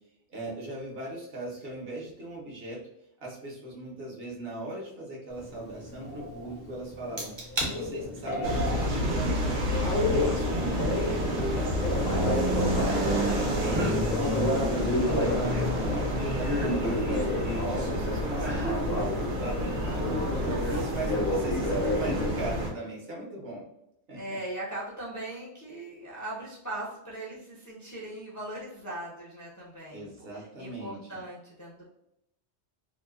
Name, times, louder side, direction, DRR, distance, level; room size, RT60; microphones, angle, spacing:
voice 1, 0.3-2.8 3.2-14.5 14.8-17.3 17.7-23.6 24.1-24.4 29.9-31.2, right 1 dB, 65° right, -2 dB, 1.0 m, -39 dB
Telephone, 5.3-22.5, left 1 dB, 65° left, 0.9 m, -32 dB
sound 1, 7.2-7.7 8.2-8.6 10.1-10.2 12.8-13.4 13.6-14.0 14.8-15.8 16.4-17.9 18.3-18.8 19.3-19.4, equal, 30° right, 0.5 m, -33 dB
sound 2, 8.4-22.7, equal, 90° right, 1.1 m, -29 dB
voice 2, 19.7-20.8 24.1-31.9, right 1 dB, 25° left, -6 dB, 0.4 m, -40 dB
2.8 x 2.0 x 2.3 m, 0.79 s
omnidirectional pair, 1.1 m